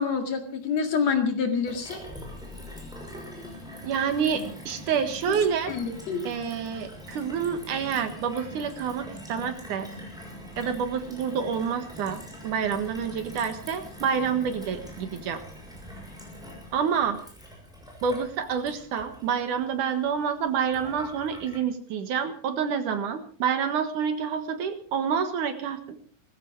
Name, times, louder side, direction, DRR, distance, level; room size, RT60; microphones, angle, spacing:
voice 1, 0.0-2.0 5.3-5.4 5.7-6.3, left 6 dB, 55° left, 6 dB, 3.0 m, -27 dB
Gurgling / Water tap faucet / Sink (filling or washing), 1.7-21.6, left 1 dB, ahead, 5.6 m, -43 dB
voice 2, 3.8-5.7 6.2-9.9 10.6-15.4 16.7-17.2 18.0-26.0, right 7 dB, 65° right, 8 dB, 2.9 m, -28 dB
19.5 x 15.5 x 4.7 m, 0.43 s
omnidirectional pair, 4.0 m